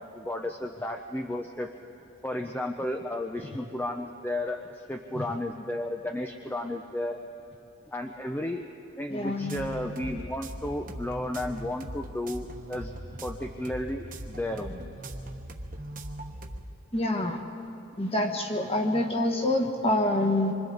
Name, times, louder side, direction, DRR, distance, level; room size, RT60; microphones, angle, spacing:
voice 1, 0.0-1.7 2.2-7.2 7.9-8.7 9.0-12.9 13.2-14.9, left 1 dB, 10° left, 3 dB, 0.5 m, -33 dB
voice 2, 9.1-9.6 16.9-17.4 18.0-20.5, left 1 dB, 25° left, 3 dB, 1.5 m, -26 dB
sound 1, 9.4-16.6, right 1 dB, 40° right, 1.1 m, -40 dB
27.0 x 24.5 x 3.9 m, 3.0 s
head